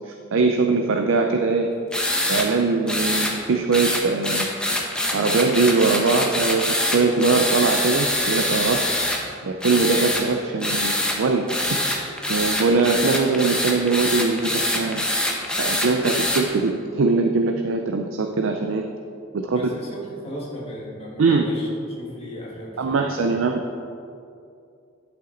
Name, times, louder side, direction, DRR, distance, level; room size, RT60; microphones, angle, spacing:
voice 1, 0.1-1.7 2.3-4.5 5.1-8.8 9.4-15.1 15.6-18.8 19.3-19.6 21.2-21.5 22.8-23.6, right 4 dB, 75° right, 4 dB, 0.5 m, -22 dB
sound 1, 1.9-2.5 2.9-3.3 3.7-9.2 9.6-10.2 10.6-11.2 11.5-16.4, left 1 dB, 5° left, 0.8 m, -24 dB
voice 2, 19.4-21.7 22.0-23.2, equal, 30° left, -4 dB, 1.7 m, -36 dB
10.5 x 5.8 x 3.9 m, 2.5 s
head